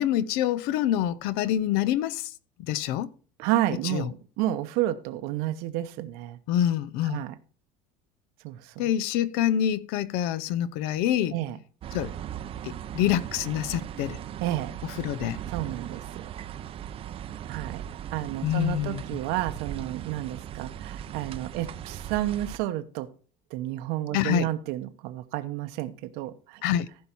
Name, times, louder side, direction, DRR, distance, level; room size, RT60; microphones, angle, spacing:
voice 1, 0.0-2.3 2.7-3.1 3.9-4.0 6.5-7.2 8.8-11.3 11.9-12.1 12.6-14.2 15.0-15.4 18.4-19.0 24.1-24.5 26.6-26.9, left 11 dB, 75° left, 0.7 m, -26 dB
voice 2, 3.4-6.4 7.0-7.3 8.4-8.9 11.3-11.6 14.4-14.7 15.5-16.3 17.5-17.8 18.1-23.1 23.5-26.6, right 14 dB, 75° right, 1.0 m, -31 dB
sound 1, 11.8-22.6, right 10 dB, 35° right, 0.6 m, -38 dB
15.0 x 5.5 x 4.5 m
cardioid pair, 150°, 16 cm